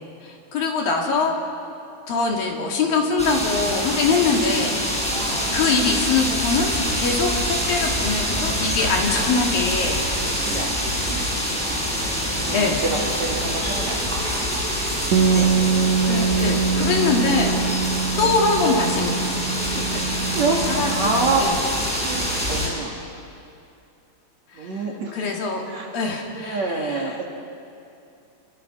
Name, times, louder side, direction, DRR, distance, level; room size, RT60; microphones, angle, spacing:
voice 1, 0.2-1.3 2.1-6.7 7.0-10.1 12.5-12.8 15.3-15.6 16.0-17.6 18.2-19.5 19.9-20.0 20.5-20.9 21.4-21.6 24.5-24.8 25.1-25.6 25.9-27.2, left 4 dB, 60° left, 0 dB, 4.0 m, -23 dB
sound 1, 3.2-22.7, equal, ahead, 6.4 m, -25 dB
voice 2, 10.1-11.3 11.6-11.9 12.4-14.6 15.4-15.6 18.1-18.3 20.3-20.6 20.9-21.4 21.9-23.0 24.5-25.2 25.7-25.9 26.4-27.2, right 3 dB, 50° right, -1 dB, 2.8 m, -28 dB
Bass guitar, 15.1-21.4, right 6 dB, 75° right, 1.7 m, -24 dB
29.0 x 23.5 x 6.2 m, 2.6 s
omnidirectional pair, 5.0 m